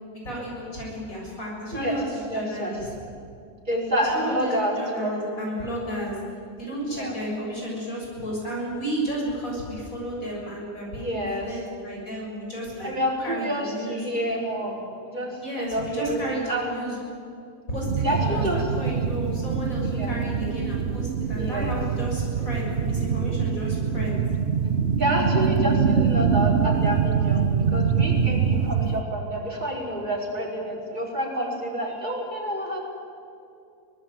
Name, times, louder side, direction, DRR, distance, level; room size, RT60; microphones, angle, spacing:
voice 1, 0.2-2.9 4.0-6.2 6.6-12.9 13.2-14.1 15.4-17.0 17.7-24.2, equal, 55° left, -3 dB, 7.5 m, -32 dB
voice 2, 2.3-2.7 3.7-4.7 5.0-5.5 7.0-7.1 11.0-11.5 12.8-16.7 18.0-18.6 19.9-20.2 21.4-21.8 25.0-32.8, equal, 25° right, -3 dB, 5.2 m, -28 dB
sound 1, 17.9-29.0, right 6 dB, 50° right, 1.0 m, -24 dB
24.5 x 19.5 x 9.1 m, 2.5 s
omnidirectional pair, 1.7 m